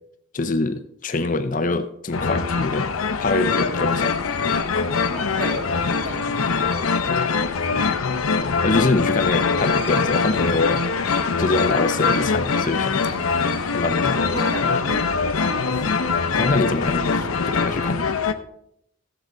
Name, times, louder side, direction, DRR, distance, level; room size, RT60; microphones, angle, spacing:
voice 1, 0.3-2.9 3.2-4.1 8.4-10.8 11.4-12.9 13.6-14.2 16.4-18.0, left 2 dB, 40° left, 0.6 m, -24 dB
sound 1, 2.1-18.3, left 5 dB, 85° left, 0.8 m, -23 dB
voice 2, 5.1-6.4 13.0-13.9 14.3-16.0, equal, 70° right, 3.1 m, -34 dB
14.0 x 7.7 x 3.8 m
head